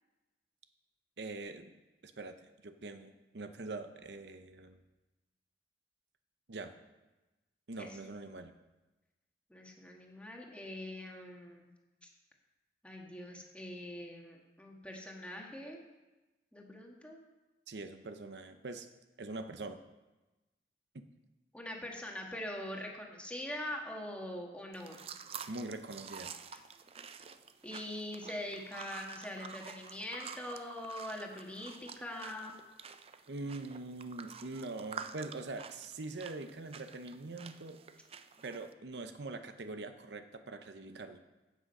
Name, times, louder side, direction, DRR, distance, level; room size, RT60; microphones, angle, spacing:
voice 1, 1.2-1.7 2.0-2.3 2.6-4.8 6.5-6.7 7.7-8.5 17.7-18.9 19.2-19.8 25.5-26.3 33.3-37.8 38.4-41.2, right 2 dB, 75° right, 8 dB, 0.7 m, -43 dB
voice 2, 9.5-11.7 12.8-15.8 16.5-17.2 21.5-25.0 27.6-32.6, left 1 dB, 5° left, 0 dB, 1.5 m, -43 dB
sound 1, 24.7-38.7, right 6 dB, 35° right, 0.5 m, -49 dB
15.5 x 6.4 x 5.4 m, 1.1 s
head